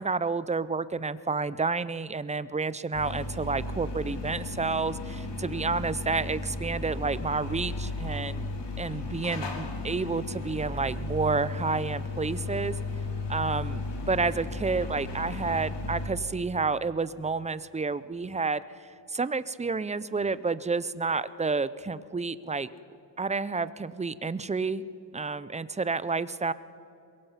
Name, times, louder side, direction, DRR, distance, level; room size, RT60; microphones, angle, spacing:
voice 1, 0.0-8.5 8.8-12.8 13.3-22.7 23.2-24.8 25.1-26.5, right 4 dB, 15° right, 16 dB, 0.5 m, -30 dB
sound 1, 2.9-16.1, left 3 dB, 65° left, 2.9 m, -35 dB
23.0 x 21.5 x 5.8 m, 2.8 s
cardioid pair, 115°, 45 cm